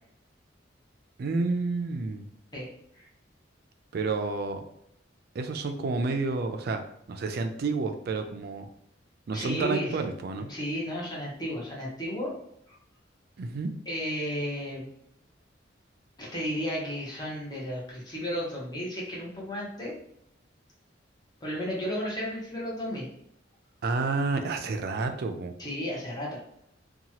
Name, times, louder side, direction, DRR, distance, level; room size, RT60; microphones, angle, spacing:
voice 1, 1.2-2.3 3.9-4.6 5.3-6.8 7.1-8.7 9.3-10.5 13.4-13.7 23.8-25.5, right 3 dB, 55° right, 6 dB, 0.4 m, -30 dB
voice 2, 9.3-9.9 10.4-12.3 12.7-12.8 13.9-14.9 16.2-19.9 21.4-23.1 25.6-26.4, equal, 20° left, -4 dB, 0.8 m, -33 dB
2.8 x 2.3 x 2.8 m, 0.74 s
head